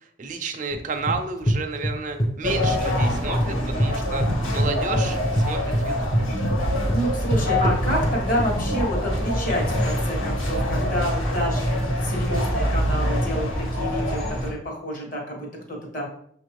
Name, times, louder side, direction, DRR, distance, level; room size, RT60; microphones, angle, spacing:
voice 1, 0.0-4.2 4.5-6.1, right 4 dB, 40° right, 6 dB, 0.4 m, -31 dB
sound 1, 0.7-2.3 2.6-3.9 4.2-8.5, equal, 15° left, 0.6 m, -24 dB
sound 2, 2.4-14.5, equal, 85° left, 1.5 m, -25 dB
voice 2, 6.6-16.1, equal, 45° left, -1 dB, 1.2 m, -29 dB
6.2 x 2.5 x 3.1 m, 0.67 s
head